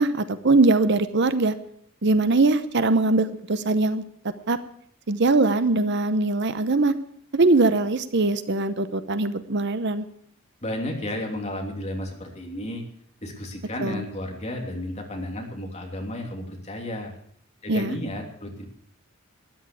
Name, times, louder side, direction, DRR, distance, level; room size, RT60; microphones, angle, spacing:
voice 1, 0.0-1.5 2.0-4.0 4.5-4.6 5.1-6.9 7.3-10.0 13.8-14.0 17.7-18.0, right 3 dB, 55° right, 12 dB, 0.8 m, -21 dB
voice 2, 10.6-12.8 13.2-17.1 17.6-18.7, left 1 dB, 30° left, 1 dB, 3.0 m, -32 dB
13.5 x 10.0 x 8.3 m, 0.65 s
head